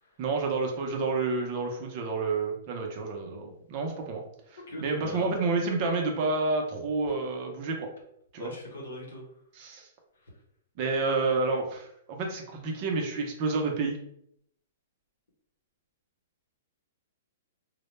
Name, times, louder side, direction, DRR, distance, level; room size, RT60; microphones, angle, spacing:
voice 1, 0.2-4.2 4.5-7.9 8.3-8.5 9.5-9.9 10.8-14.0, right 3 dB, 35° right, 1 dB, 0.5 m, -29 dB
voice 2, 4.7-5.4 8.4-9.2 10.2-10.3, left 1 dB, 80° left, -1 dB, 0.9 m, -40 dB
2.1 x 2.0 x 3.0 m, 0.72 s
hypercardioid pair, 160°, 0 cm